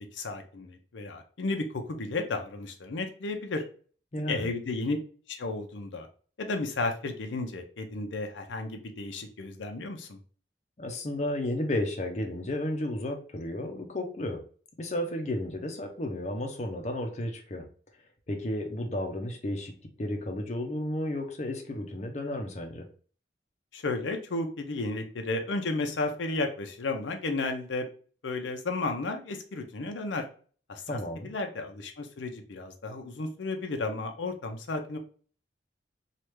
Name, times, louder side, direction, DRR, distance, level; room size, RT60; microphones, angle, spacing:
voice 1, 0.0-3.6 4.3-5.0 5.3-6.1 6.4-10.2 23.7-27.9 28.2-30.3 30.7-31.0 31.2-35.0, left 3 dB, 90° left, 5 dB, 0.6 m, -33 dB
voice 2, 4.1-4.5 10.8-14.4 14.8-17.6 18.3-19.7 20.0-22.9 30.9-31.3, left 1 dB, 40° left, 3 dB, 0.6 m, -33 dB
3.3 x 2.4 x 2.9 m, 0.42 s
head